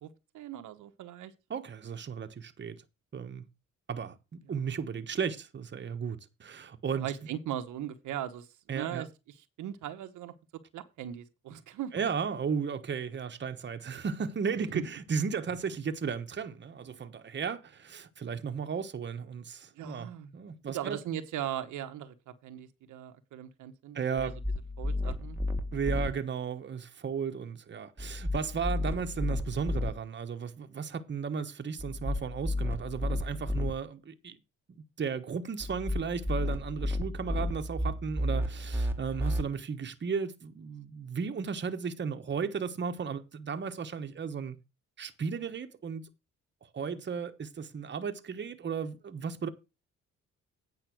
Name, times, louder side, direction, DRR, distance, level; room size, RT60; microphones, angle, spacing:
voice 1, 0.0-1.3 4.5-4.6 6.9-12.0 14.7-14.8 19.7-20.3 20.7-24.3 24.8-25.4, right 11 dB, 80° right, 1.1 m, -39 dB
voice 2, 1.5-2.8 3.1-3.4 3.9-7.1 8.7-9.0 11.9-21.0 23.9-24.3 25.7-34.4 34.8-44.6 45.0-46.1 46.6-49.5, right 6 dB, 35° right, 1.2 m, -35 dB
sound 1, 24.2-26.1 28.0-29.9 31.8-33.7 35.6-39.4, left 1 dB, 5° right, 1.4 m, -32 dB
9.1 x 5.7 x 6.1 m
cardioid pair, 90°, 30 cm